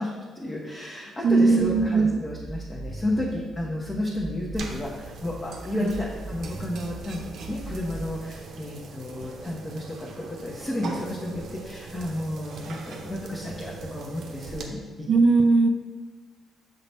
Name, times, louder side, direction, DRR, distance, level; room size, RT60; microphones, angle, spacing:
voice 1, 0.0-15.1, left 1 dB, 20° left, -4 dB, 1.0 m, -32 dB
voice 2, 1.2-2.2 5.7-5.9 15.1-15.7, right 3 dB, 50° right, 6 dB, 0.4 m, -19 dB
sound 1, 1.6-4.6 5.0-8.1, right 2 dB, 10° right, 0.7 m, -40 dB
sound 2, 4.6-14.6, right 3 dB, 65° right, 0.9 m, -41 dB
6.8 x 3.9 x 4.3 m, 1.4 s
cardioid pair, 120°, 0 cm